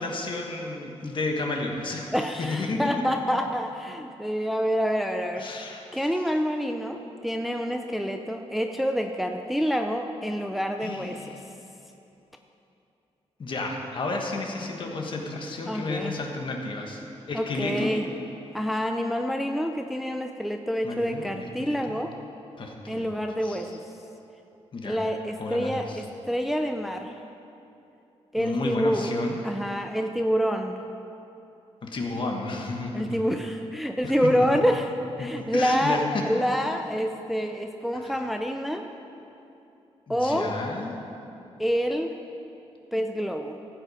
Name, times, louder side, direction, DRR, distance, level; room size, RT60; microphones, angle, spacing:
voice 1, 0.0-2.8 5.4-5.9 10.8-11.5 13.4-17.0 17.3-18.0 20.8-21.2 21.6-22.0 22.6-23.1 23.4-23.6 24.7-25.0 25.4-26.0 28.4-29.4 31.8-33.2 34.0-34.6 35.2-36.2 38.0-38.1 40.1-40.9, left 2 dB, 50° left, 1 dB, 1.5 m, -32 dB
voice 2, 2.1-5.5 5.9-11.4 15.7-16.1 17.3-18.1 18.5-22.1 22.9-23.8 24.8-27.1 28.3-29.1 29.4-30.7 32.9-34.9 35.2-38.9 40.1-40.5 41.6-42.1 42.9-43.6, equal, ahead, 4 dB, 0.5 m, -27 dB
14.5 x 8.5 x 5.0 m, 2.8 s
cardioid pair, 115°, 11 cm